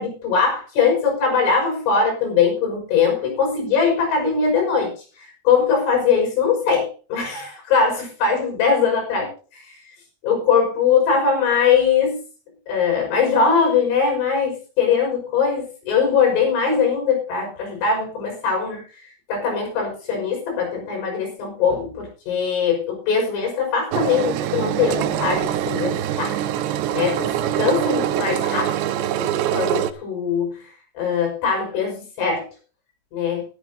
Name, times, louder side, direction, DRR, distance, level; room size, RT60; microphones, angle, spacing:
voice 1, 0.0-9.8 10.2-12.2 12.7-18.8 19.3-26.4 26.9-28.8 29.2-30.6 31.0-32.5 33.1-33.5, left 6 dB, 65° left, 1 dB, 8.1 m, -21 dB
Engine, 23.9-29.9, right 11 dB, 85° right, 2.4 m, -24 dB
20.0 x 11.0 x 2.8 m, 0.38 s
omnidirectional pair, 5.9 m